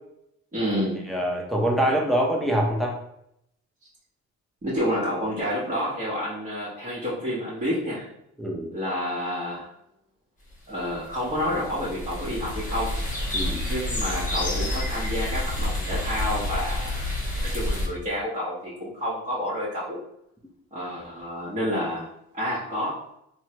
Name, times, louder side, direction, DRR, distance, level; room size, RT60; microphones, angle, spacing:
voice 1, 0.5-1.0 4.6-8.1 8.7-9.7 10.7-13.0 13.6-17.1 17.4-20.0 20.7-22.1 22.3-23.0, equal, 25° right, -11 dB, 1.1 m, -29 dB
voice 2, 1.1-3.0 8.4-8.7 13.3-13.6, equal, ahead, -1 dB, 0.6 m, -24 dB
sound 1, 10.8-17.9, left 1 dB, 25° left, 1.1 m, -29 dB
3.1 x 2.1 x 2.9 m, 0.76 s
cardioid pair, 90°, 30 cm